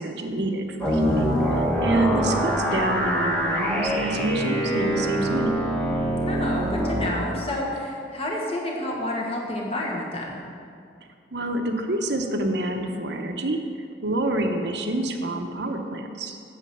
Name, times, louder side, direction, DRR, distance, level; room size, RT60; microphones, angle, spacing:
voice 1, 0.0-5.5 11.3-13.6 14.0-16.4, right 1 dB, 70° right, 4 dB, 0.8 m, -27 dB
sound 1, 0.8-7.1, equal, 5° left, 1.1 m, -24 dB
voice 2, 6.2-10.4, left 1 dB, 30° left, -2 dB, 1.4 m, -29 dB
8.4 x 7.5 x 5.5 m, 2.4 s
head